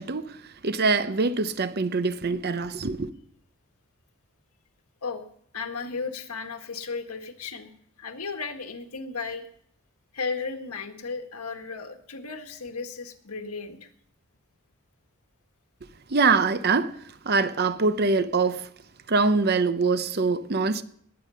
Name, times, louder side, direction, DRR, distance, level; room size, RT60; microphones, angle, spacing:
voice 1, 0.0-3.1 16.1-18.7 19.1-20.8, right 4 dB, 45° right, 0.8 m, -24 dB
voice 2, 5.5-7.7 8.0-9.4 10.1-13.9, left 4 dB, 85° left, 1.7 m, -34 dB
20.0 x 8.4 x 5.7 m
head